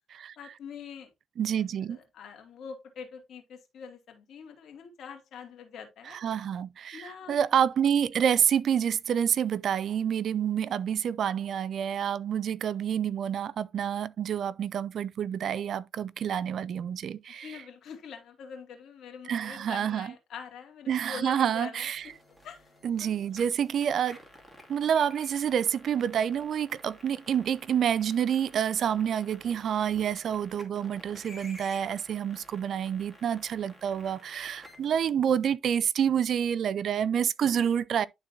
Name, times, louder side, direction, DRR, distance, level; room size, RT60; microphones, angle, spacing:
voice 1, 0.4-1.1 1.5-6.2 6.9-7.4 17.4-22.1 22.4-22.7 23.0-23.2, left 6 dB, 70° left, 2.4 m, -45 dB
voice 2, 1.4-2.0 6.1-17.5 19.3-20.1 20.9-22.0 22.8-24.2 24.7-38.1, right 8 dB, 65° right, 0.4 m, -28 dB
sound 1, 22.0-35.1, equal, ahead, 2.5 m, -53 dB
11.5 x 3.8 x 2.8 m
cardioid pair, 90°, 0 cm